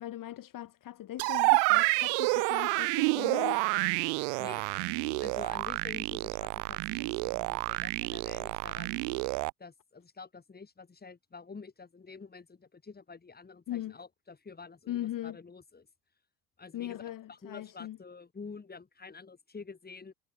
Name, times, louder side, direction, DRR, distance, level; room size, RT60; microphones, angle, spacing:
voice 1, 0.0-4.0 13.7-14.0 14.9-15.4 16.7-18.0, left 13 dB, 40° left, 3.4 m, -39 dB
sound 1, 1.2-9.5, right 40 dB or more, 55° right, 1.6 m, -29 dB
voice 2, 5.2-9.0 9.6-15.9 16.6-20.1, left 4 dB, 20° left, 6.9 m, -48 dB
figure-of-eight pair, 70°, 48 cm